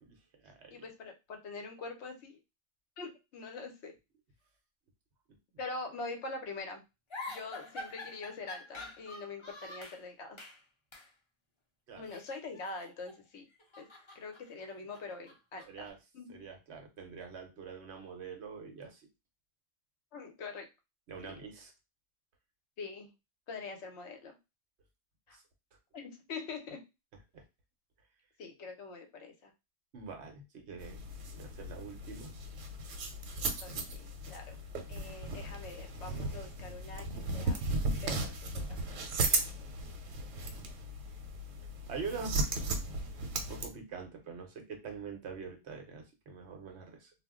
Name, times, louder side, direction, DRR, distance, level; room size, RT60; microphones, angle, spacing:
voice 1, 0.0-0.8 11.9-12.0 15.7-16.0 16.3-19.0 21.1-21.7 25.3-25.4 27.3-27.4 29.9-31.0 31.3-32.3 39.3-39.5 41.9-42.4 43.5-47.1, right 5 dB, 65° right, 4 dB, 1.0 m, -44 dB
voice 2, 0.7-2.4 3.0-3.9 5.6-6.8 7.3-10.4 12.0-13.4 13.8-13.9 14.1-15.9 16.1-16.3 20.1-20.7 21.2-21.4 22.8-23.1 23.5-24.3 25.3-25.4 25.9-26.8 28.4-29.5 33.6-34.6 34.9-37.6 38.0-39.0, left 3 dB, 70° left, 4 dB, 0.9 m, -44 dB
sound 1, 7.1-10.0 10.4-10.6 10.9-11.1 12.0-13.2 13.5-15.9, left 2 dB, 35° left, 0.5 m, -47 dB
sound 2, 30.8-43.7, right 2 dB, 90° right, 1.0 m, -36 dB
2.4 x 2.1 x 3.5 m, 0.25 s
omnidirectional pair, 1.3 m